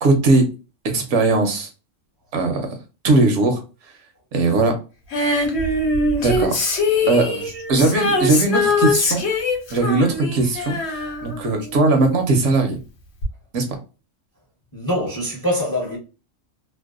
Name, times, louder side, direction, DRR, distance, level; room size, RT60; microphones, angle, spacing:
voice 1, 0.0-0.5 0.8-1.7 2.3-2.7 3.0-3.6 4.3-4.7 6.2-6.6 7.1-7.3 7.7-9.2 9.7-12.8 13.5-13.7, right 3 dB, 70° right, 0.9 m, -19 dB
Female singing, 5.1-12.1 13.2-13.3, left 2 dB, 60° left, 1.0 m, -22 dB
voice 2, 7.0-7.4 9.8-10.1 14.7-16.0, equal, 25° left, 0.5 m, -25 dB
2.6 x 2.0 x 2.3 m
omnidirectional pair, 1.4 m